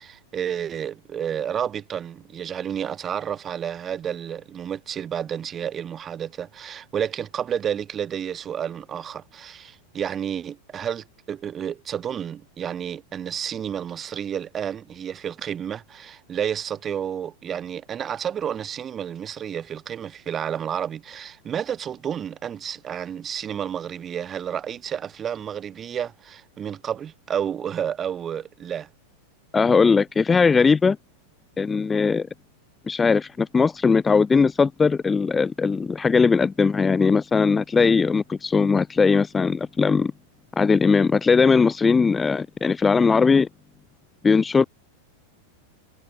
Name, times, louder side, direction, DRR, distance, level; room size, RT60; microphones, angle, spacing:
voice 1, 0.0-28.9, right 9 dB, 25° right, 1.6 m, -30 dB
voice 2, 29.5-31.0 31.6-32.3 32.9-40.1 40.6-43.5 44.2-44.6, left 5 dB, 15° left, 0.6 m, -19 dB
figure-of-eight pair, 90°, 0 cm